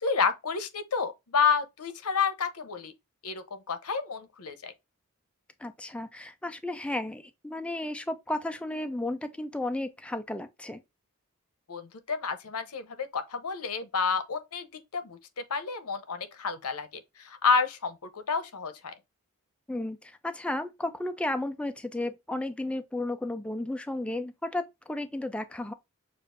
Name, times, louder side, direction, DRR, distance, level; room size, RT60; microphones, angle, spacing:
voice 1, 0.0-2.9 3.2-4.7 11.7-14.7 14.9-16.9 17.2-18.9, left 5 dB, 85° left, 0.8 m, -30 dB
voice 2, 5.6-10.8 19.7-25.7, left 1 dB, 5° left, 0.4 m, -33 dB
6.7 x 2.4 x 2.5 m
head